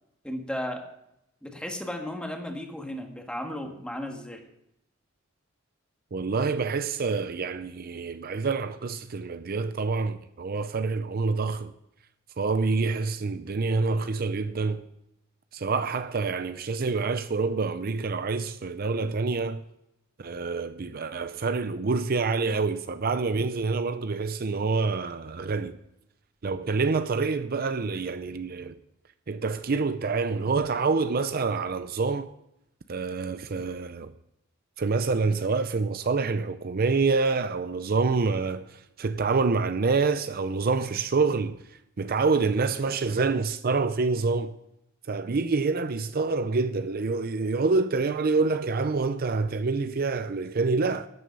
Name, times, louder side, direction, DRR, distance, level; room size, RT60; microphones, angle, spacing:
voice 1, 0.2-0.9 1.4-4.4, left 1 dB, 5° left, 1.7 m, -35 dB
voice 2, 6.1-11.7 12.4-14.8 15.5-19.6 20.2-25.8 26.4-28.8 29.3-32.3 32.9-34.1 34.8-41.6 42.0-44.6 45.1-51.1, right 4 dB, 50° right, 0.5 m, -27 dB
13.0 x 9.6 x 5.3 m
head